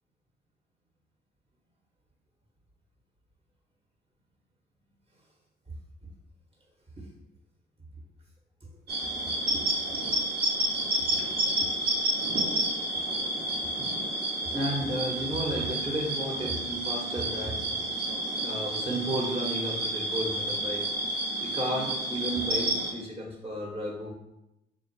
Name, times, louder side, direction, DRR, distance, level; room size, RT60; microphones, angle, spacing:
sound 1, 8.9-22.9, right 1 dB, 60° right, 1.0 m, -30 dB
voice 1, 13.3-14.0 14.5-17.6 18.4-20.9 21.4-24.1, right 1 dB, 30° right, -1 dB, 1.1 m, -33 dB
3.8 x 2.3 x 4.5 m, 0.91 s
supercardioid pair, 55°, 19 cm